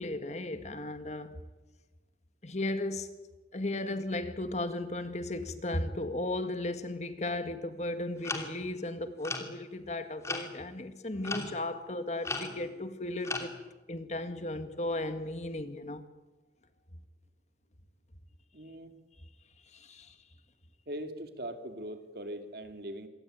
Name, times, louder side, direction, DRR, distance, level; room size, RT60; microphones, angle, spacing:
voice 1, 0.0-1.4 2.4-3.1 3.5-13.5 13.9-16.0 19.7-20.2, left 1 dB, 40° left, 1.9 m, -35 dB
sound 1, 8.2-8.6 9.2-9.5 10.2-10.5 11.2-11.6 12.2-12.7 13.2-13.5, left 3 dB, 15° left, 2.8 m, -36 dB
voice 2, 18.5-19.0 20.9-23.1, right 1 dB, 55° right, 3.0 m, -41 dB
27.0 x 23.5 x 9.3 m
head